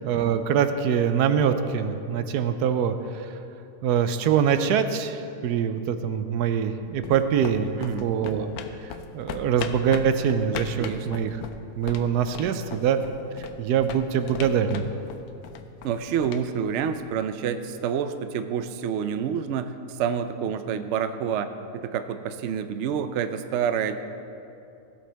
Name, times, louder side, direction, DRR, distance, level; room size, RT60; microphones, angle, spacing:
voice 1, 0.0-3.3 3.8-7.7 8.0-8.5 8.8-8.9 9.1-11.4 11.8-13.0 13.4-14.9, right 8 dB, 90° right, 9 dB, 1.2 m, -24 dB
sound 1, 6.6-17.4, left 7 dB, 75° left, 1.1 m, -39 dB
voice 2, 7.8-8.1 10.8-11.1 12.4-12.6 15.8-21.5 21.7-24.0, right 8 dB, 65° right, 9 dB, 0.7 m, -28 dB
16.5 x 7.9 x 3.4 m, 2.6 s
omnidirectional pair, 1.6 m